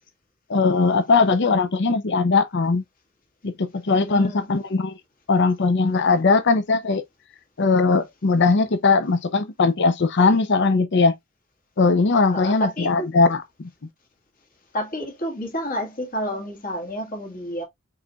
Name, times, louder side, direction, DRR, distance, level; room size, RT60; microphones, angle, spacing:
voice 1, 0.5-2.8 3.4-5.0 5.3-7.0 7.6-11.2 11.8-13.7, left 4 dB, 55° left, 0.6 m, -19 dB
voice 2, 3.9-4.5 12.3-13.1 14.7-17.6, equal, 40° left, 1.7 m, -29 dB
4.7 x 4.1 x 2.3 m
head